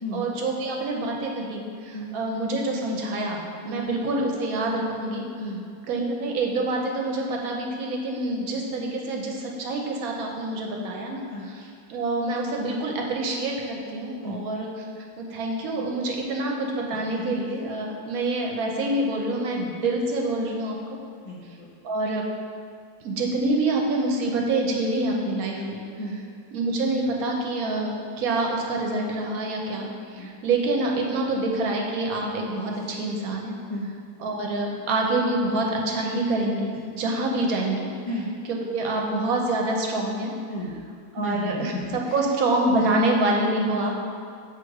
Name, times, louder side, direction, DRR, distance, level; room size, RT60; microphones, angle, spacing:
voice 1, 0.1-5.3 5.9-14.7 15.0-20.7 21.8-22.2 23.0-25.8 26.5-33.5 34.2-37.8 38.5-40.3 41.1-43.9, right 2 dB, 75° right, 0 dB, 1.2 m, -26 dB
voice 2, 21.2-21.7 26.0-26.2 30.2-30.3 33.7-33.9 38.0-38.3 40.5-40.8 41.2-42.0 42.8-42.9, equal, 55° left, -6 dB, 0.3 m, -33 dB
6.2 x 3.3 x 4.7 m, 2.2 s
omnidirectional pair, 1.6 m